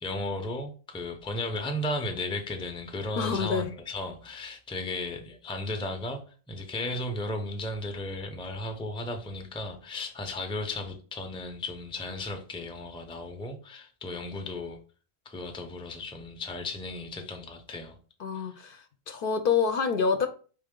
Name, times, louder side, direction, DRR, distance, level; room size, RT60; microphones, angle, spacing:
voice 1, 0.0-6.2 6.5-14.8 15.3-18.0 18.3-18.7, left 2 dB, 5° left, 0.4 m, -35 dB
voice 2, 3.2-3.7 18.2-18.8 19.1-20.3, left 5 dB, 65° left, 0.7 m, -27 dB
4.5 x 3.2 x 3.7 m
omnidirectional pair, 1.1 m